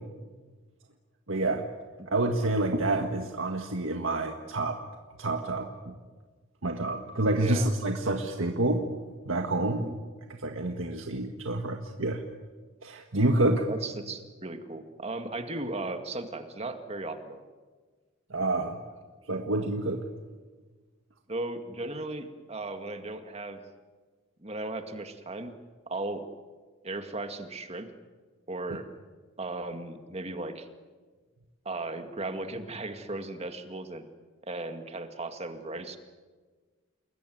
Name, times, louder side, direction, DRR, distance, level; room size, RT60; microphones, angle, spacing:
voice 1, 1.3-1.7 2.1-4.8 5.2-6.0 6.6-8.8 9.2-9.9 10.4-12.2 12.8-13.7 18.3-18.8 19.3-20.0, right 2 dB, 75° right, 3 dB, 1.7 m, -28 dB
voice 2, 7.3-7.7 9.8-9.9 13.7-17.4 21.3-23.6 24.4-25.5 25.9-26.2 26.8-27.9 28.5-28.9 29.4-30.7 31.7-34.0 34.4-36.0, right 2 dB, 30° right, 7 dB, 2.0 m, -36 dB
29.0 x 21.0 x 9.4 m, 1.4 s
head